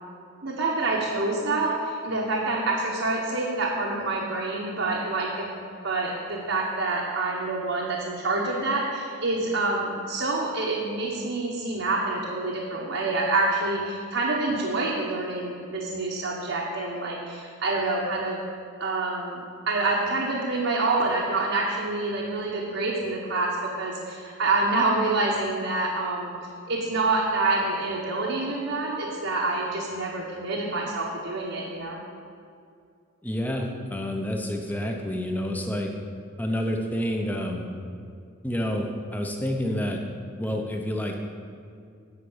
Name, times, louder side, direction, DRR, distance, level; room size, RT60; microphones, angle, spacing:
voice 1, 0.4-18.4 18.8-26.3 26.7-32.0, right 2 dB, 65° right, -3 dB, 1.2 m, -27 dB
voice 2, 33.2-35.9 36.4-37.7 38.4-40.0 40.4-41.2, equal, 10° left, 2 dB, 0.8 m, -28 dB
9.8 x 5.2 x 8.0 m, 2.4 s
head